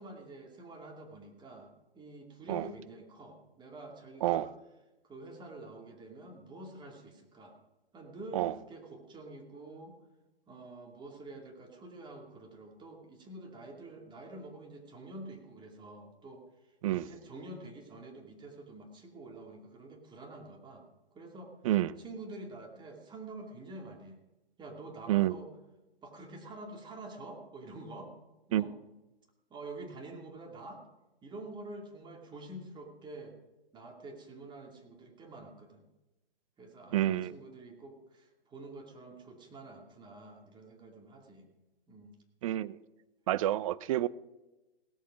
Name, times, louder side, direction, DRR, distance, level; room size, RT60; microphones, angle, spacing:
voice 1, 0.0-4.5 5.0-7.6 7.9-10.0 10.5-16.5 16.9-20.9 21.1-21.5 22.0-24.2 24.6-25.5 26.0-28.1 28.5-28.7 29.5-30.8 31.2-33.4 33.7-35.8 36.6-41.5 41.9-42.1, right 2 dB, 15° right, 2.5 m, -47 dB
voice 2, 21.6-22.0 25.1-25.4 28.5-28.7 36.9-37.3 42.4-42.8 43.3-44.1, right 14 dB, 35° right, 0.5 m, -28 dB
17.5 x 13.0 x 5.1 m
figure-of-eight pair, 120°, 30 cm